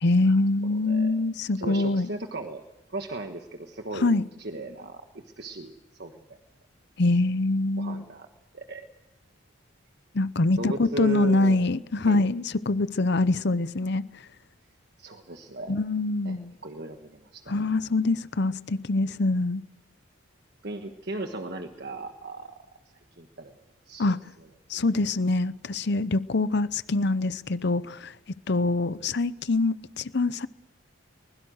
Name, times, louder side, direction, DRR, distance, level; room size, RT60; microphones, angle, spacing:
voice 1, 0.0-2.1 4.0-4.2 7.0-8.0 10.1-14.0 15.7-16.5 17.5-19.6 24.0-24.2 24.7-28.1 28.5-30.5, left 2 dB, 55° left, 0.7 m, -24 dB
voice 2, 1.6-2.6 2.9-5.0 5.4-6.4 7.8-8.3 8.5-8.8 10.6-11.6 12.0-12.2 15.0-15.8 16.2-16.4 16.6-17.5 20.6-22.6 23.2-23.6 23.9-24.1, right 2 dB, 50° right, 1.4 m, -36 dB
24.0 x 21.5 x 6.5 m
head